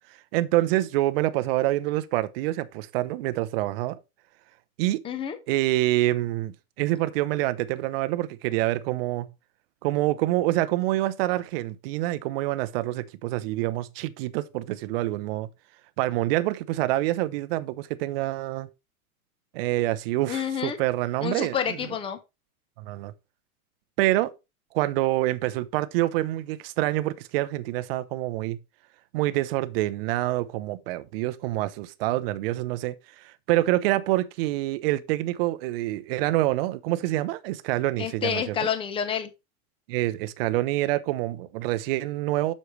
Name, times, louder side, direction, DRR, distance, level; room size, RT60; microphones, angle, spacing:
voice 1, 0.3-4.0 4.8-5.0 5.5-9.3 9.8-15.5 16.0-18.7 19.5-21.6 22.8-23.1 24.0-24.3 24.7-28.6 29.1-38.6 39.9-42.5, right 16 dB, 40° right, 0.7 m, -26 dB
voice 2, 5.0-5.4 20.3-20.8 21.2-22.2 38.0-39.3, left 8 dB, 10° left, 0.8 m, -28 dB
7.9 x 6.5 x 3.2 m
supercardioid pair, 150°, 44 cm